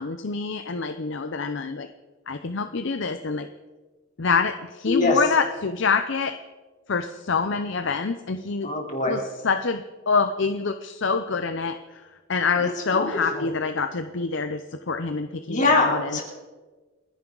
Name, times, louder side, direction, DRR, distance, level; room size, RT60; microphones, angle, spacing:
voice 1, 0.0-1.9 2.3-3.5 4.2-6.4 6.9-8.7 9.1-16.2, left 4 dB, 55° left, 9 dB, 0.6 m, -26 dB
voice 2, 4.9-5.2 8.6-9.2 12.6-13.5 15.5-16.2, left 3 dB, 35° left, -1 dB, 3.5 m, -23 dB
30.0 x 10.5 x 3.9 m, 1.3 s
head